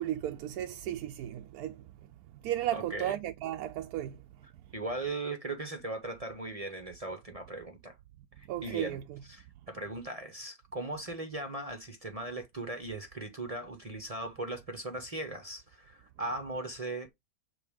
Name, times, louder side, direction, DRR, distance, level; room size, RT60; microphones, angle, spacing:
voice 1, 0.0-1.9 2.4-4.2 8.5-9.2, right 12 dB, 85° right, 1.1 m, -34 dB
voice 2, 2.7-3.2 4.7-8.0 8.4-9.0 9.3-17.1, right 2 dB, 30° right, 0.8 m, -38 dB
6.8 x 3.9 x 3.5 m
omnidirectional pair, 1.6 m